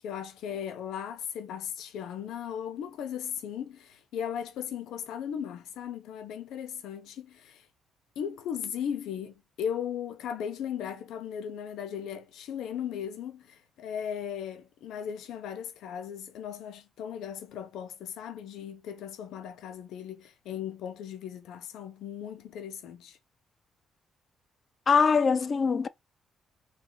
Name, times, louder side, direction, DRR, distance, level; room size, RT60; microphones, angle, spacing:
voice 1, 0.0-7.7 8.2-23.2, left 8 dB, 85° left, 0.9 m, -37 dB
voice 2, 24.9-25.9, left 5 dB, 40° left, 0.5 m, -22 dB
4.1 x 2.8 x 4.7 m
cardioid pair, 90°, 0 cm